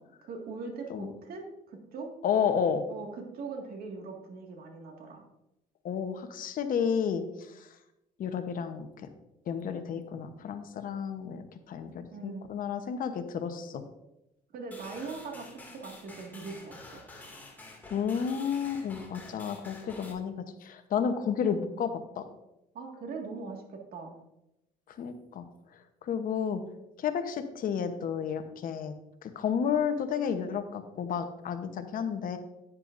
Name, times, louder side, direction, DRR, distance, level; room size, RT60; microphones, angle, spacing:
voice 1, 0.2-2.1 2.9-5.2 12.1-12.5 14.5-17.0 22.7-24.2, right 4 dB, 65° right, 2 dB, 1.9 m, -41 dB
voice 2, 2.2-2.8 5.8-7.7 8.2-9.1 9.5-13.8 17.9-20.3 20.6-22.2 24.9-25.4 26.0-26.6 27.0-28.9 29.2-32.4, left 7 dB, 55° left, 8 dB, 1.0 m, -31 dB
sound 1, 14.7-20.1, left 2 dB, 10° left, 2.2 m, -49 dB
10.5 x 9.6 x 2.6 m, 0.90 s
cardioid pair, 110°, 17 cm